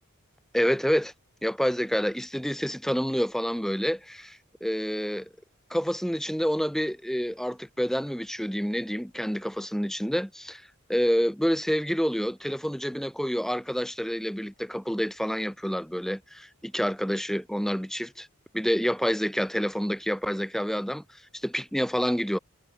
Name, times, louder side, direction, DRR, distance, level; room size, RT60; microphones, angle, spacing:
voice 1, 0.5-1.1 1.4-5.3 5.7-10.6 10.9-18.3 18.5-21.0 21.4-22.4, equal, ahead, 4.1 m, -28 dB
head